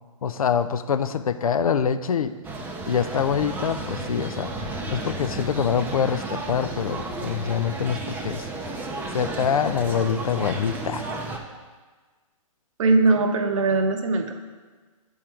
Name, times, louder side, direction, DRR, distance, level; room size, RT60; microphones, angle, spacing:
voice 1, 0.2-2.3 2.9-4.5 4.9-8.5 9.1-11.1, left 7 dB, 90° left, 11 dB, 0.4 m, -25 dB
sound 1, 2.4-11.4, right 2 dB, 10° right, 0.5 m, -33 dB
voice 2, 12.8-14.4, right 3 dB, 65° right, 6 dB, 0.8 m, -21 dB
8.6 x 3.7 x 4.4 m, 1.4 s
hypercardioid pair, 135°, 18 cm